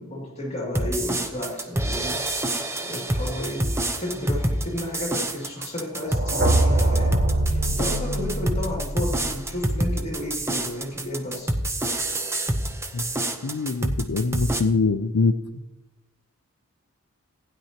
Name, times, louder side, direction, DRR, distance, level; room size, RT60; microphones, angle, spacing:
voice 1, 0.0-2.2 2.8-3.7 4.0-11.5, left 1 dB, 30° left, -2 dB, 2.4 m, -32 dB
sound 1, 0.7-14.6, right 1 dB, 10° right, 0.7 m, -27 dB
sound 2, 6.1-10.0, right 1 dB, 45° right, 2.1 m, -24 dB
voice 2, 13.4-15.4, left 4 dB, 80° left, 10 dB, 0.5 m, -23 dB
16.0 x 10.0 x 2.9 m, 1.0 s
head